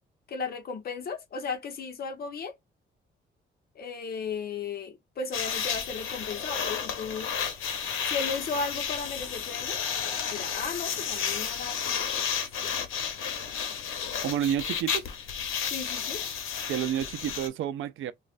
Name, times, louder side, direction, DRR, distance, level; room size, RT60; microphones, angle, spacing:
voice 1, 0.3-2.5 3.7-7.3 8.1-9.8 10.0-12.7 15.7-16.2, left 5 dB, 50° left, 1.0 m, -35 dB
sound 1, 5.3-17.5, left 7 dB, 80° left, 0.9 m, -32 dB
voice 2, 14.2-15.1 16.7-18.1, right 10 dB, 75° right, 0.5 m, -30 dB
3.1 x 2.4 x 2.4 m
cardioid pair, 155°, 21 cm